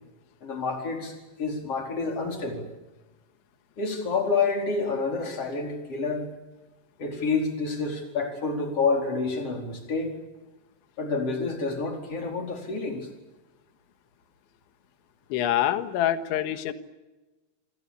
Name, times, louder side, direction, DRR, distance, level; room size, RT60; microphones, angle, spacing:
voice 1, 0.4-2.7 3.8-6.3 7.0-10.1 11.0-13.1, left 4 dB, 30° left, 2 dB, 5.2 m, -28 dB
voice 2, 15.3-16.7, left 11 dB, 75° left, 9 dB, 3.7 m, -25 dB
29.0 x 24.5 x 7.3 m, 1.1 s
omnidirectional pair, 5.7 m